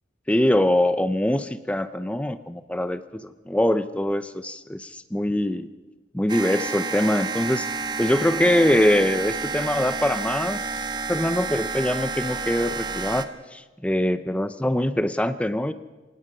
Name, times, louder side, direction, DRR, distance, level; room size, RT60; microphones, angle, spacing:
voice 1, 0.3-5.7 6.1-7.7 8.0-10.6 11.1-15.7, left 1 dB, 5° left, 12 dB, 0.6 m, -23 dB
sound 1, 6.3-13.2, right 4 dB, 25° right, 1.0 m, -30 dB
25.0 x 19.0 x 5.5 m, 1.2 s
head